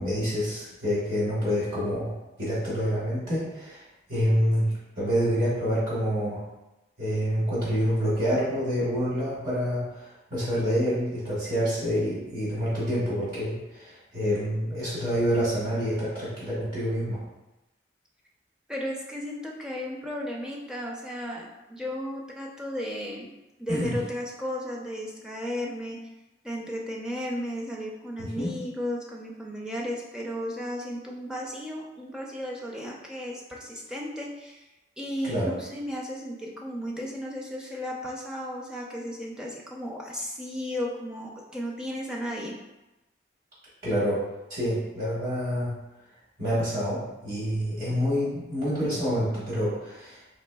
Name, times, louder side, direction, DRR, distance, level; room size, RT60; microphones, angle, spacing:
voice 1, 0.0-2.1 2.4-3.8 4.1-6.4 7.0-17.2 23.7-24.0 28.2-28.5 35.2-35.5 43.8-45.8 46.4-50.2, equal, 50° right, -9 dB, 1.5 m, -27 dB
voice 2, 18.7-23.3 23.6-26.0 26.4-34.6 35.0-42.5, equal, 5° right, -3 dB, 0.4 m, -34 dB
4.1 x 3.2 x 2.2 m, 1.0 s
head